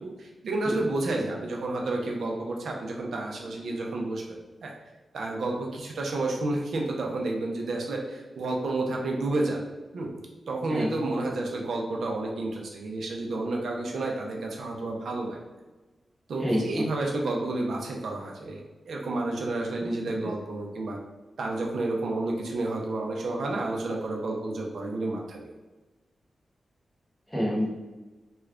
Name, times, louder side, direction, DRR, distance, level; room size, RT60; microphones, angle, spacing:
voice 1, 0.0-4.7 5.1-9.7 9.9-10.1 10.5-15.4 16.3-21.0 21.4-25.5, right 2 dB, 80° right, 0 dB, 0.6 m, -30 dB
voice 2, 16.4-16.8 19.8-19.9 20.2-20.3 27.3-27.6, equal, 5° left, -5 dB, 1.0 m, -27 dB
3.2 x 2.3 x 3.6 m, 1.2 s
wide cardioid pair, 95°, 0 cm